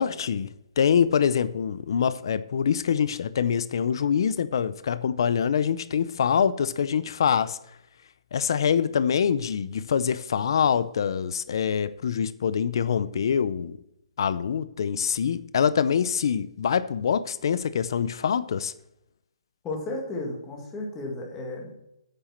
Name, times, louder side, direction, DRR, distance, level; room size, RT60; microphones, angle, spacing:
voice 1, 0.0-7.6 8.3-13.8 14.2-18.7, left 7 dB, 45° left, 0.6 m, -25 dB
voice 2, 19.6-21.7, left 2 dB, 10° left, 1.9 m, -33 dB
8.9 x 7.3 x 5.8 m
hypercardioid pair, 175°, 3 cm